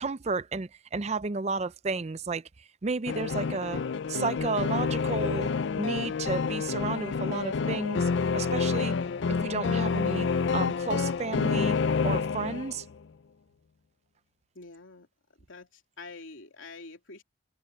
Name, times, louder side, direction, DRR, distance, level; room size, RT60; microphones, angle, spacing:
voice 1, 0.0-3.8 4.1-5.5 5.7-9.0 9.3-10.3 10.5-11.8 12.0-12.9, right 4 dB, 35° right, 0.5 m, -32 dB
sound 1, 3.1-12.9, left 5 dB, 65° left, 0.4 m, -28 dB
voice 2, 14.5-15.1 15.4-17.2, left 3 dB, 85° left, 3.0 m, -46 dB
head